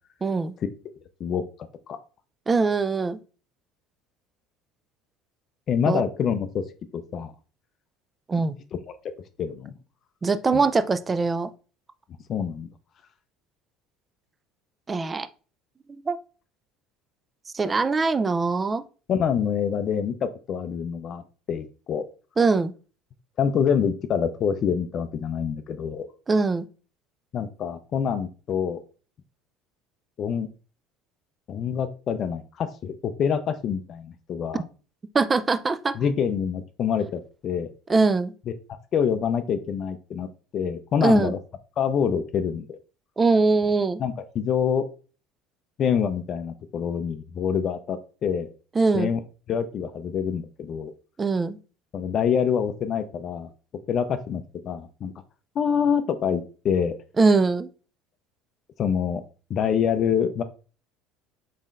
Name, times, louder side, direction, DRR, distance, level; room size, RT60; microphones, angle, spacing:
voice 1, 0.2-0.5 2.5-3.2 5.9-6.0 8.3-8.5 10.2-11.5 14.9-15.3 16.1-16.2 17.5-18.8 22.4-22.7 26.3-26.7 35.1-36.0 37.9-38.3 41.0-41.3 43.2-44.0 48.8-49.1 51.2-51.6 57.2-57.7, right 4 dB, 25° right, 12 dB, 0.3 m, -22 dB
voice 2, 5.7-6.6 6.9-7.3 9.4-9.7 10.5-10.6 12.3-12.7 19.1-21.2 21.5-22.0 23.4-26.1 27.3-28.8 30.2-30.5 31.5-34.6 35.9-37.7 38.9-40.3 40.5-41.4 41.8-42.8 44.0-44.8 45.8-48.5 48.9-49.2 49.5-50.9 51.9-53.5 53.9-55.1 55.6-57.0 58.8-59.2 59.5-60.4, left 7 dB, 50° left, 10 dB, 0.4 m, -26 dB
4.1 x 3.7 x 2.4 m, 0.36 s
hypercardioid pair, 85°, 0 cm